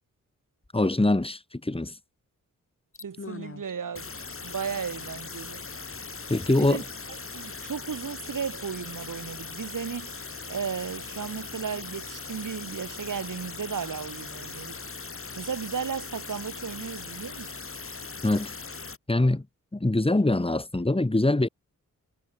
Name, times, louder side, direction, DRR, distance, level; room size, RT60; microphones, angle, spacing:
voice 1, 0.7-2.0 6.3-6.8 18.2-18.5 19.1-19.4 19.7-21.5, left 2 dB, 15° left, 3.2 m, -23 dB
sound 1, 2.9-3.6 4.0-19.0, left 4 dB, 40° left, 3.2 m, -39 dB
voice 2, 3.0-4.1 4.4-5.6 6.5-6.8 7.3-10.2 10.5-14.8 15.4-17.5, right 6 dB, 70° right, 6.3 m, -35 dB
cardioid pair, 60°, 33 cm